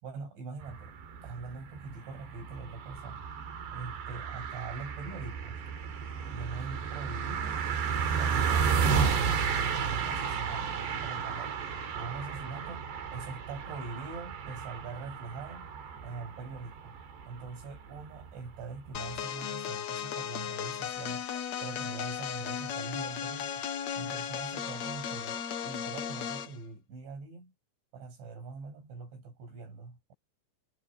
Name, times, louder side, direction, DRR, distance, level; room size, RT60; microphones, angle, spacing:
voice 1, 0.0-0.9 1.2-3.3 3.7-5.6 6.3-7.6 8.2-11.6 11.9-15.7 16.0-17.0 17.3-21.2 21.6-23.7 24.0-27.5 27.9-30.1, right 4 dB, 90° right, 9.9 m, -43 dB
sound 1, 0.6-19.2, right 6 dB, 70° right, 5.3 m, -33 dB
sound 2, 18.9-26.6, left 8 dB, 60° left, 1.8 m, -36 dB
omnidirectional pair, 5.2 m